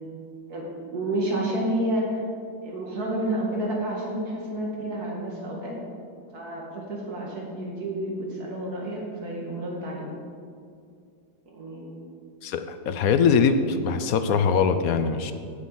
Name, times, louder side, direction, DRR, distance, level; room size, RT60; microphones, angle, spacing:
voice 1, 0.5-2.2 2.6-5.8 6.3-10.1 11.5-12.0, right 1 dB, 55° right, -2 dB, 2.7 m, -30 dB
voice 2, 12.4-15.3, left 6 dB, 65° left, 9 dB, 0.9 m, -22 dB
16.5 x 7.6 x 4.3 m, 2.3 s
omnidirectional pair, 2.0 m